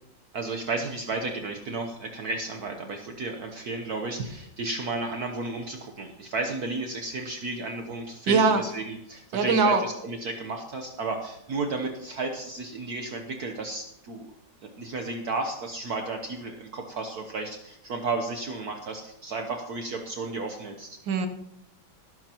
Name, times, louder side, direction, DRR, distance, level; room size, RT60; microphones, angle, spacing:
voice 1, 0.3-14.3 14.6-21.0, right 3 dB, 60° right, 3 dB, 1.4 m, -33 dB
voice 2, 8.3-8.6 9.3-9.8 21.1-21.3, right 4 dB, 85° right, 8 dB, 1.8 m, -21 dB
18.5 x 11.0 x 3.0 m, 0.81 s
omnidirectional pair, 2.0 m